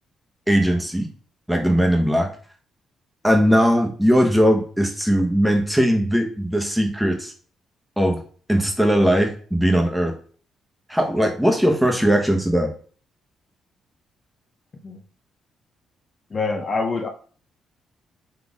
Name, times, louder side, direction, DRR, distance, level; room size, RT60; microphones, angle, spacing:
voice 1, 0.5-1.1 1.5-2.3 3.2-7.3 8.0-8.2 8.5-10.1 10.9-12.7, equal, ahead, 3 dB, 1.0 m, -19 dB
voice 2, 16.3-17.1, left 3 dB, 35° left, 5 dB, 0.6 m, -25 dB
4.1 x 3.3 x 3.5 m, 0.43 s
cardioid pair, 90°, 0 cm